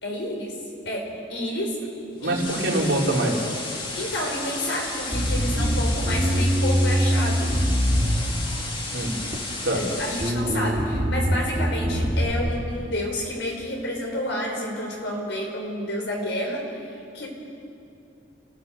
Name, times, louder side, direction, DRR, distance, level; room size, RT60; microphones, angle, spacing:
voice 1, 0.0-0.5 0.8-1.0 1.3-1.8 2.2-2.5 4.0-7.5 9.7-16.7 17.1-17.3, left 1 dB, 70° left, 0 dB, 5.3 m, -29 dB
sound 1, 2.2-10.3, left 3 dB, 25° left, 2.0 m, -33 dB
voice 2, 2.2-3.5 8.9-9.1 9.6-9.8, right 1 dB, 75° right, -3 dB, 4.0 m, -24 dB
Bass guitar, 5.1-8.7 9.3-9.9 10.2-12.3, equal, 25° right, 3.1 m, -23 dB
29.5 x 16.0 x 6.9 m, 2.7 s
head